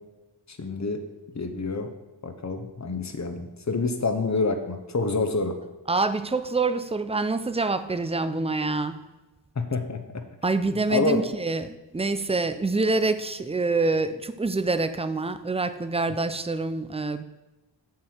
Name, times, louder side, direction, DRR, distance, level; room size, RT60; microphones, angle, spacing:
voice 1, 0.5-1.0 1.3-1.9 2.2-5.6 9.6-10.2 10.9-11.2, left 3 dB, 40° left, 7 dB, 0.9 m, -27 dB
voice 2, 5.9-9.0 10.4-17.2, right 3 dB, 15° right, 12 dB, 0.4 m, -26 dB
7.5 x 6.8 x 4.4 m, 1.1 s
wide cardioid pair, 110°, 43 cm